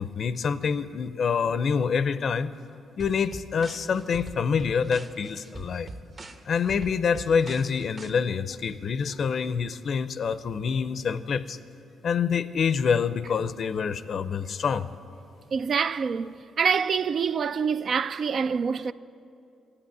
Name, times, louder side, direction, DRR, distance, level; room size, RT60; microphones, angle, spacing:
voice 1, 0.0-2.5 3.0-5.9 6.5-11.6 12.0-14.9, left 6 dB, 60° left, 0.5 m, -26 dB
sound 1, 3.0-8.1, right 2 dB, 40° right, 1.1 m, -42 dB
voice 2, 15.5-18.9, right 6 dB, 55° right, 0.4 m, -26 dB
13.0 x 9.8 x 9.6 m
cardioid pair, 75°, 0 cm